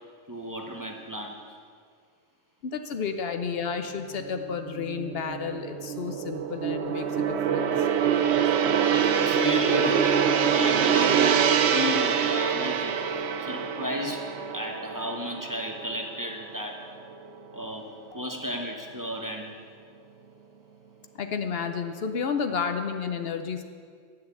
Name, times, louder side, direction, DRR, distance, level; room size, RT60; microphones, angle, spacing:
voice 1, 0.3-1.6 9.2-10.2 10.5-11.4 11.7-13.0 13.4-14.2 14.5-16.8 17.5-17.9 18.1-19.5, equal, 20° right, 1 dB, 0.9 m, -33 dB
voice 2, 2.6-7.9 18.1-18.2 21.1-23.6, left 6 dB, 70° left, 7 dB, 0.9 m, -31 dB
Gong, 4.2-16.7 17.0-17.3, right 7 dB, 80° right, 0.9 m, -25 dB
10.0 x 6.6 x 8.1 m, 2.1 s
omnidirectional pair, 1.1 m